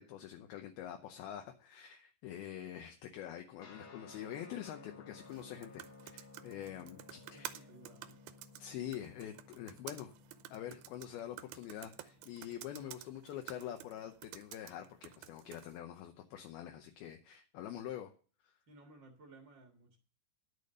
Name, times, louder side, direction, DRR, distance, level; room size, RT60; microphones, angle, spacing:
voice 1, 0.0-7.7 8.6-10.1 10.5-18.1 18.4-18.5, left 11 dB, 75° left, 5 dB, 2.5 m, -45 dB
Guitar, 3.6-13.4, left 4 dB, 50° left, 1.6 m, -58 dB
sound 1, 5.2-15.8, right 13 dB, 80° right, 2.2 m, -52 dB
voice 2, 7.2-8.2 18.7-20.0, right 2 dB, 60° right, 2 dB, 1.1 m, -58 dB
10.5 x 7.0 x 6.5 m, 0.40 s
omnidirectional pair, 4.8 m